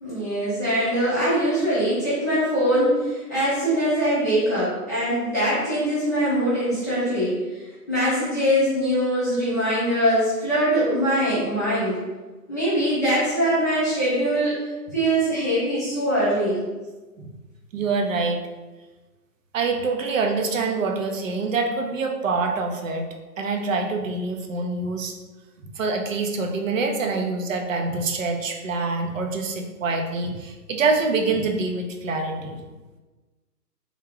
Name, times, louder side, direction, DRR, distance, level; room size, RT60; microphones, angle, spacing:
voice 1, 0.0-12.0 12.5-14.5 14.9-16.6, equal, 10° left, -15 dB, 0.5 m, -22 dB
voice 2, 17.7-18.4 19.5-23.0 23.4-25.1 25.6-32.6, right 3 dB, 55° right, 3 dB, 0.6 m, -25 dB
3.5 x 2.3 x 3.4 m, 1.2 s
hypercardioid pair, 155°, 48 cm